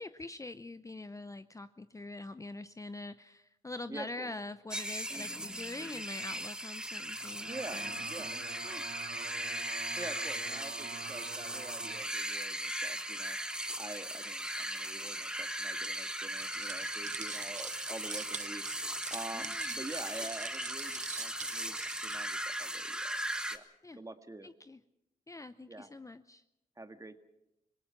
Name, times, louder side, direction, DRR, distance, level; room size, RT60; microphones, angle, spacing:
voice 1, 0.0-8.8 19.3-19.8 23.8-24.0 24.4-24.8 25.3-26.4, left 2 dB, 20° left, 12 dB, 0.7 m, -44 dB
voice 2, 3.9-4.3 5.1-5.5 5.8-6.0 7.5-8.3 10.0-13.4 13.8-18.6 19.1-23.2 23.5-23.7 23.9-24.5 25.7-25.9 26.8-27.2, right 2 dB, 20° right, 8 dB, 1.8 m, -46 dB
sound 1, 4.7-23.6, right 1 dB, 5° right, 1.6 m, -38 dB
sound 2, 7.1-12.1, right 8 dB, 70° right, 1.0 m, -47 dB
sound 3, 16.4-22.3, right 7 dB, 50° right, 0.6 m, -45 dB
26.0 x 18.0 x 5.9 m, 0.88 s
cardioid pair, 60°, 16 cm